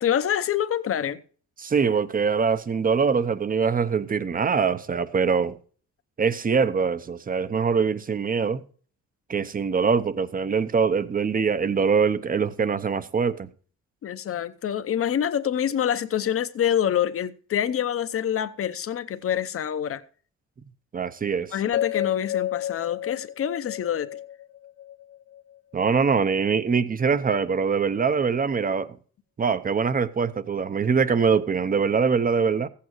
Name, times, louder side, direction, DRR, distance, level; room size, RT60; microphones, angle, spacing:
voice 1, 0.0-1.2 14.0-20.0 21.5-24.2, left 9 dB, 50° left, 0.7 m, -26 dB
voice 2, 1.6-5.6 6.2-8.6 9.3-13.5 20.9-21.5 25.7-29.0 29.4-32.7, right 5 dB, 30° right, 0.7 m, -23 dB
sound 1, 21.7-25.8, left 12 dB, 90° left, 1.7 m, -31 dB
15.0 x 8.5 x 3.1 m
cardioid pair, 90°, 30 cm